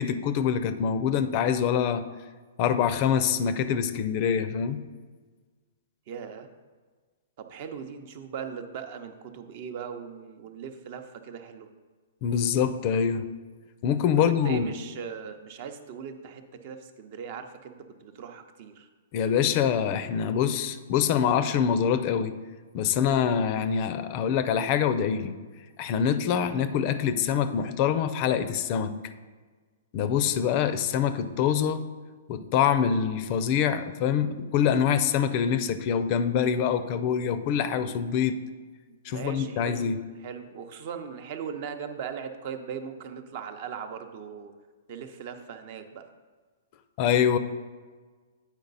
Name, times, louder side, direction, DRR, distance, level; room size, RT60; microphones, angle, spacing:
voice 1, 0.0-2.0 2.6-4.8 12.2-13.3 13.8-14.7 19.1-22.3 22.7-25.3 25.8-29.0 29.9-31.8 32.3-38.4 39.0-40.0 47.0-47.4, left 8 dB, 40° left, 12 dB, 0.4 m, -25 dB
voice 2, 6.1-6.5 7.4-11.7 14.2-18.9 38.9-39.9 40.2-44.5 44.9-46.1, right 7 dB, 50° right, 7 dB, 0.7 m, -39 dB
8.9 x 4.6 x 4.0 m, 1.4 s
hypercardioid pair, 135°, 0 cm